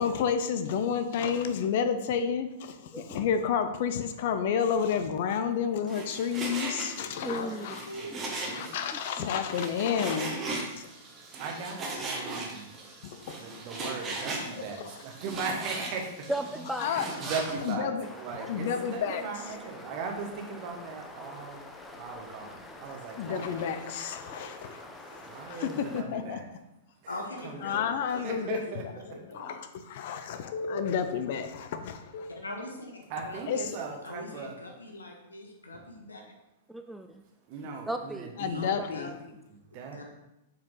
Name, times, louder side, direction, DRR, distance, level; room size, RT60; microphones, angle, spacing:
voice 1, 0.0-7.9 8.4-10.3 10.8-10.9 13.0-13.4 16.8-17.0 17.7-18.0 18.5-19.2 23.2-24.8 25.1-25.7 25.9-26.4 27.6-28.6 29.3-32.4 33.5-33.6 38.4-39.2, left 7 dB, 55° left, 9 dB, 0.5 m, -30 dB
voice 2, 2.9-3.3 7.2-7.7 8.1-8.2 9.2-9.3 16.3-16.9 28.1-28.2 36.7-37.2 37.9-38.3 38.8-39.1, right 1 dB, 5° right, 6 dB, 0.3 m, -35 dB
Frying (food), 5.9-17.7, right 2 dB, 25° right, 1.4 m, -38 dB
voice 3, 7.3-8.1 27.1-28.8 29.1-29.5 32.3-33.7 34.0-36.2 38.5-39.3 39.7-40.0, left 1 dB, 80° left, 1 dB, 1.4 m, -42 dB
voice 4, 8.0-8.7 11.2-12.7 13.3-16.3 16.8-21.7 22.0-23.9 25.2-26.5 27.0-28.0 28.2-29.2 33.1-34.6 35.7-35.8 37.5-38.7 39.5-40.0, right 5 dB, 45° right, 2 dB, 1.3 m, -39 dB
sound 1, 18.0-26.0, left 2 dB, 15° left, 0.8 m, -46 dB
7.4 x 4.6 x 3.9 m, 0.90 s
figure-of-eight pair, 100°, 0 cm